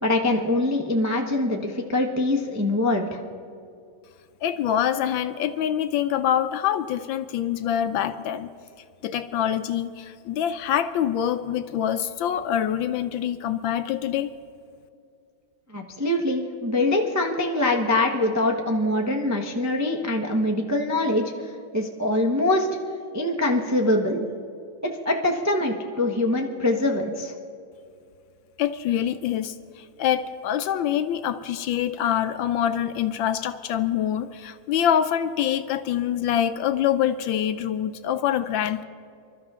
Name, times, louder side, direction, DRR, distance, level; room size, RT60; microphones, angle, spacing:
voice 1, 0.0-3.2 15.7-21.3 21.7-22.7 23.1-24.2 24.8-27.3, left 2 dB, 20° right, 1 dB, 0.4 m, -23 dB
voice 2, 4.4-8.5 9.0-14.3 28.6-38.8, left 10 dB, 75° left, 10 dB, 1.2 m, -25 dB
27.0 x 12.5 x 3.7 m, 2.4 s
omnidirectional pair, 2.3 m